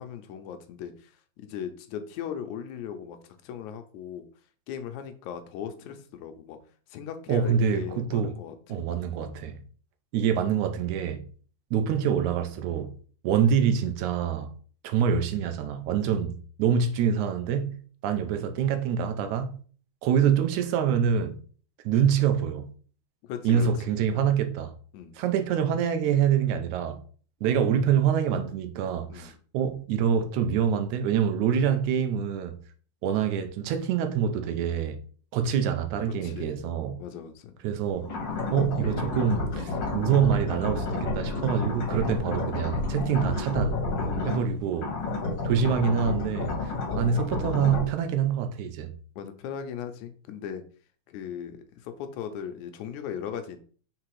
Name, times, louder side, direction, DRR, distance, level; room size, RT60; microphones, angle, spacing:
voice 1, 0.0-4.3 4.7-6.6 6.9-8.8 23.2-23.7 24.1-24.3 24.9-25.1 29.1-29.4 36.2-36.6 37.0-37.6 41.5-41.7 44.0-44.3 46.6-46.8 49.2-50.6 51.1-53.6, left 8 dB, 80° left, 2.1 m, -38 dB
voice 2, 7.3-8.3 8.7-9.6 10.1-11.2 11.7-12.9 13.2-14.5 14.8-19.6 20.0-21.4 21.9-22.7 23.4-24.7 25.2-27.0 27.4-32.6 33.0-35.0 35.3-37.0 37.6-38.1 38.5-43.8 44.3-45.0 45.4-48.9, right 8 dB, 85° right, 2.1 m, -26 dB
sound 1, 38.0-44.5 44.7-47.9, left 2 dB, 50° left, 1.6 m, -30 dB
5.9 x 3.8 x 4.7 m
omnidirectional pair, 3.5 m